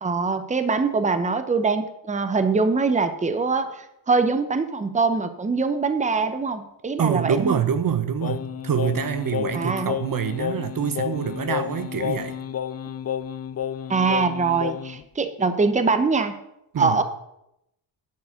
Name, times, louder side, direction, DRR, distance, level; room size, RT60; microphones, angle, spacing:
voice 1, 0.0-7.6 9.5-9.9 13.9-16.3 16.8-17.0, right 4 dB, 15° right, 9 dB, 0.8 m, -23 dB
voice 2, 7.0-12.4 16.7-17.0, right 8 dB, 45° right, 10 dB, 0.8 m, -25 dB
Singing, 8.2-15.0, left 9 dB, 35° left, 0.5 m, -31 dB
10.5 x 4.8 x 8.0 m, 0.83 s
cardioid pair, 100°, 48 cm